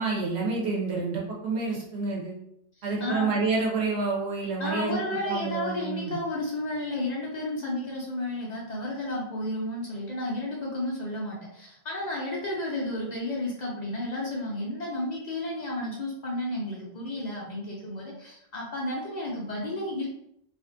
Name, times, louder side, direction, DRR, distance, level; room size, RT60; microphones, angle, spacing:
voice 1, 0.0-2.4 2.8-5.0 5.2-6.2, right 4 dB, 60° right, -3 dB, 0.9 m, -28 dB
voice 2, 2.8-3.3 4.6-20.1, left 1 dB, 70° left, -4 dB, 0.4 m, -32 dB
2.5 x 2.5 x 2.5 m, 0.73 s
omnidirectional pair, 1.4 m